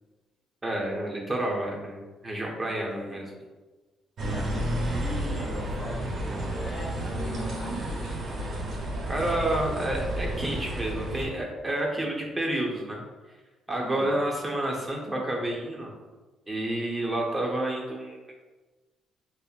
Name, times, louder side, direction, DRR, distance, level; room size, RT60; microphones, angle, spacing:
voice 1, 0.6-3.3 9.1-13.0 13.7-15.9 16.5-18.3, right 1 dB, 20° right, -1 dB, 0.8 m, -29 dB
voice 2, 2.9-3.3 4.2-8.1 13.8-14.1, left 2 dB, 35° left, -1 dB, 0.5 m, -40 dB
sound 1, 4.2-11.2, right 1 dB, 60° right, 0.8 m, -31 dB
5.4 x 2.0 x 2.5 m, 1.3 s
cardioid pair, 90°, 0 cm